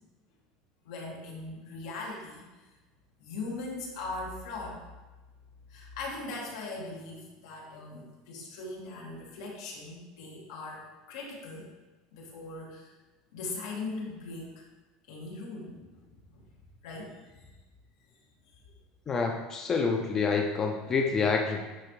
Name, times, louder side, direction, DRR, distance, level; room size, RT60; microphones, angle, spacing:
voice 1, 0.8-2.4 3.2-4.8 5.7-10.8 11.1-11.7 12.1-12.9 13.3-14.6 15.1-16.4 16.8-17.5, left 3 dB, 90° left, -2 dB, 2.1 m, -40 dB
voice 2, 19.1-21.6, left 5 dB, 20° left, 2 dB, 0.5 m, -27 dB
10.5 x 4.3 x 3.2 m, 1.2 s
cardioid pair, 180°, 2 cm